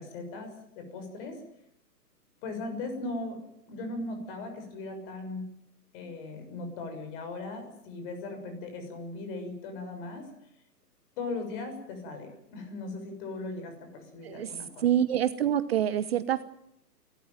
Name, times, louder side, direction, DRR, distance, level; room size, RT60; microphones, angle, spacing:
voice 1, 0.0-1.4 2.4-3.4 3.7-5.4 5.9-10.3 11.2-14.9, left 2 dB, 35° left, 6 dB, 6.7 m, -38 dB
voice 2, 14.8-16.4, right 10 dB, 40° right, 14 dB, 0.9 m, -26 dB
29.0 x 13.5 x 9.2 m, 0.75 s
hypercardioid pair, 145°, 49 cm